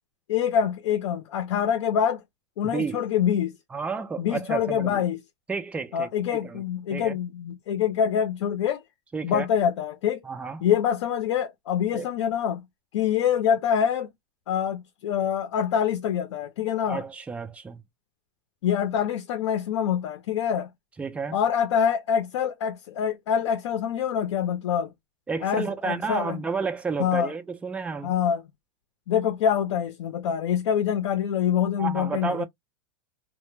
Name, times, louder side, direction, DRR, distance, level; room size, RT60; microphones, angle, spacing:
voice 1, 0.3-2.2 2.6-3.6 4.2-5.2 5.9-8.8 9.2-10.2 10.6-12.6 12.9-14.1 14.5-17.0 18.6-20.7 21.3-24.9 25.4-26.4 27.0-27.3 28.0-28.4 29.1-32.4, left 8 dB, 75° left, 0.5 m, -25 dB
voice 2, 2.6-3.0 3.7-5.0 5.5-6.6 6.9-7.2 9.1-9.5 10.2-10.7 11.9-12.1 16.9-17.8 21.0-21.4 25.3-28.1 31.8-32.4, right 5 dB, 10° right, 0.4 m, -31 dB
2.1 x 2.0 x 3.0 m
supercardioid pair, 145°, 15 cm